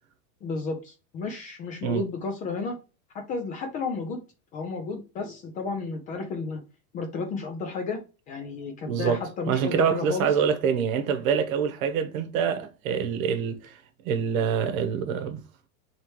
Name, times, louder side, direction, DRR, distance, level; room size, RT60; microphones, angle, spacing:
voice 1, 0.4-2.8 3.1-4.2 4.5-6.6 6.9-8.0 8.3-10.4, left 4 dB, 20° left, 0.3 m, -32 dB
voice 2, 8.8-13.8 14.0-15.4, right 7 dB, 70° right, 1.0 m, -26 dB
3.2 x 3.0 x 4.5 m
supercardioid pair, 155°, 42 cm